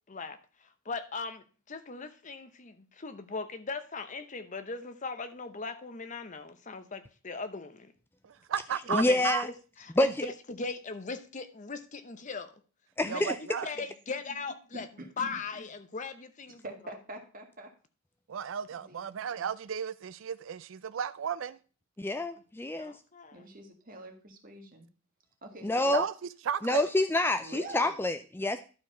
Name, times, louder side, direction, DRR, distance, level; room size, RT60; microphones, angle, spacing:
voice 1, 0.1-7.9 8.9-12.5 13.0-14.9 15.2-16.6 22.8-23.4, left 4 dB, 40° left, 0.8 m, -39 dB
voice 2, 8.2-9.4 13.1-13.7 18.3-21.6 25.9-26.1 26.5-26.9, right 7 dB, 70° right, 0.4 m, -34 dB
voice 3, 8.9-9.5 10.0-10.3 13.0-13.4 22.0-22.9 25.6-26.0 26.6-28.6, left 1 dB, 10° left, 0.4 m, -27 dB
voice 4, 14.7-15.3 16.6-17.7 18.7-19.0 23.3-24.9 25.4-25.9 27.4-28.0, right 1 dB, 45° right, 1.8 m, -45 dB
11.5 x 4.7 x 5.5 m
head